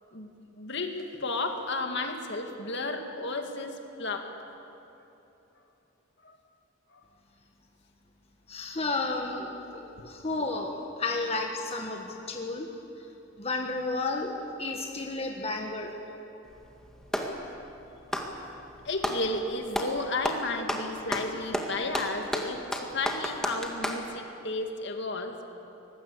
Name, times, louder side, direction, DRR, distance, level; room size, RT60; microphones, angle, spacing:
voice 1, 0.1-4.3 6.2-6.4 6.9-7.0 18.8-25.5, left 2 dB, 60° left, 4 dB, 2.2 m, -33 dB
voice 2, 8.5-12.7 13.4-14.3 14.6-15.9, left 3 dB, 30° left, 2 dB, 1.5 m, -32 dB
Clapping, 16.5-17.4 18.0-19.3 19.7-20.0 20.2-24.1, equal, 5° left, 1.9 m, -32 dB
24.0 x 20.0 x 8.5 m, 3.0 s
head